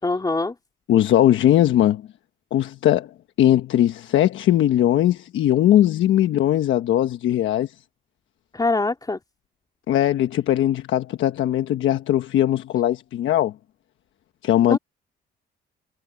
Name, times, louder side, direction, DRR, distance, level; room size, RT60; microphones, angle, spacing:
voice 1, 0.0-0.5 8.5-9.2 14.7-14.8, left 3 dB, 20° left, 3.5 m, -23 dB
voice 2, 0.9-2.0 2.5-3.1 3.4-7.7 9.9-13.5 14.4-14.8, left 12 dB, 75° left, 1.2 m, -19 dB
cardioid pair, 90°, 20 cm